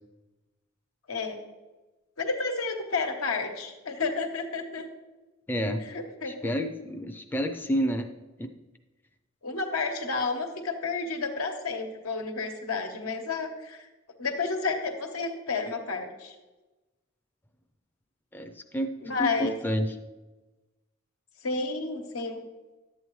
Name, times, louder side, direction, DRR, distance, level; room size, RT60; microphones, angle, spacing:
voice 1, 1.1-1.4 2.2-4.9 5.9-6.5 9.4-13.8 14.2-16.3 19.0-19.5 21.4-22.4, left 4 dB, 90° left, 4 dB, 1.2 m, -31 dB
voice 2, 5.5-5.8 6.3-8.1 8.4-8.5 18.3-19.9, equal, 10° left, 5 dB, 0.4 m, -30 dB
11.0 x 8.1 x 3.1 m, 1.2 s
head